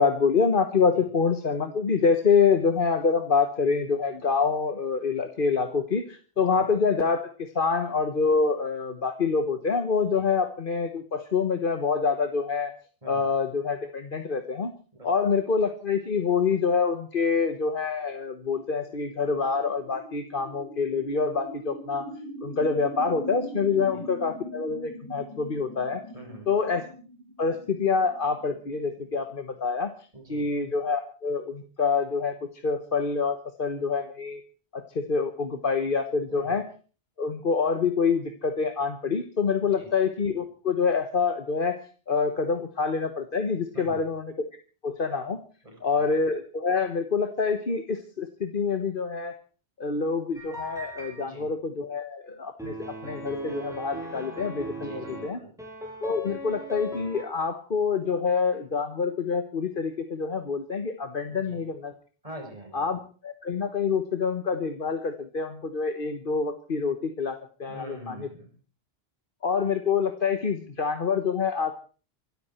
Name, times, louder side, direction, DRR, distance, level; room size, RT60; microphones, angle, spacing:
voice 1, 0.0-12.7 13.0-14.7 15.0-22.1 22.4-26.0 26.5-26.9 27.4-29.9 30.3-34.4 34.7-36.7 37.2-41.8 42.1-44.3 44.8-45.4 45.8-49.4 49.8-52.8 53.0-55.4 56.0-61.9 62.7-68.2 69.4-71.7, left 5 dB, 60° left, 7 dB, 1.4 m, -26 dB
sound 1, 17.9-29.6, right 1 dB, 25° left, 3.6 m, -42 dB
voice 2, 26.1-26.5 30.1-30.5 36.3-36.5 39.6-39.9 43.7-44.0 45.6-46.0 51.2-51.5 54.7-55.5 61.3-61.6 62.2-62.8 67.7-68.5, right 1 dB, 35° right, 1 dB, 6.4 m, -44 dB
sound 2, 50.3-51.2 52.6-55.3 55.6-57.2, equal, 5° right, 5.9 m, -37 dB
25.5 x 13.0 x 4.4 m, 0.40 s
omnidirectional pair, 1.0 m